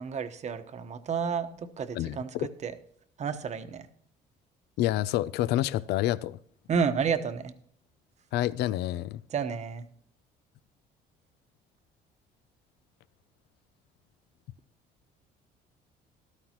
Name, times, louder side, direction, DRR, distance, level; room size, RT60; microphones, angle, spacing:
voice 1, 0.0-2.7 3.2-3.9 6.7-7.5 9.3-9.8, right 6 dB, 45° right, 1.1 m, -31 dB
voice 2, 4.8-6.4 8.3-9.2, left 14 dB, 80° left, 0.5 m, -28 dB
13.5 x 12.5 x 3.0 m
cardioid pair, 110°, 17 cm